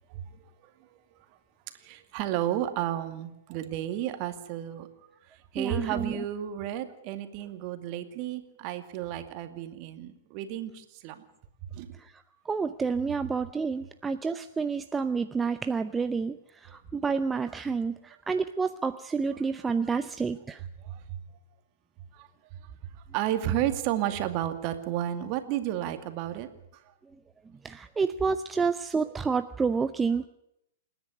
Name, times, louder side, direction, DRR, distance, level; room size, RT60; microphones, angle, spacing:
voice 1, 1.8-4.9 5.3-11.2 11.7-11.9 20.8-21.0 22.1-22.3 22.6-26.5, right 12 dB, 40° right, 8 dB, 2.3 m, -32 dB
voice 2, 5.6-6.2 12.0-12.1 12.5-20.6 27.6-30.3, right 5 dB, 15° right, 10 dB, 0.7 m, -29 dB
28.0 x 10.5 x 9.9 m, 0.81 s
figure-of-eight pair, 105°, 0 cm